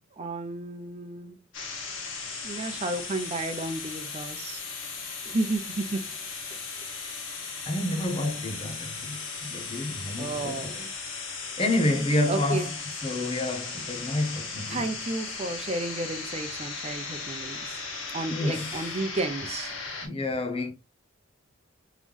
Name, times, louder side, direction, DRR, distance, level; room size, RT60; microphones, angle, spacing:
voice 1, 0.2-1.4 2.4-4.6 5.2-7.1 10.1-10.9 12.3-12.7 14.7-17.9 18.1-19.8, right 2 dB, 35° right, 0.7 m, -33 dB
sound 1, 1.5-20.1, left 4 dB, 80° left, 1.4 m, -37 dB
voice 2, 7.7-10.8 11.6-12.7 13.0-14.8 18.3-18.9 20.0-20.7, left 1 dB, 30° left, 0.9 m, -29 dB
3.6 x 3.1 x 3.5 m
head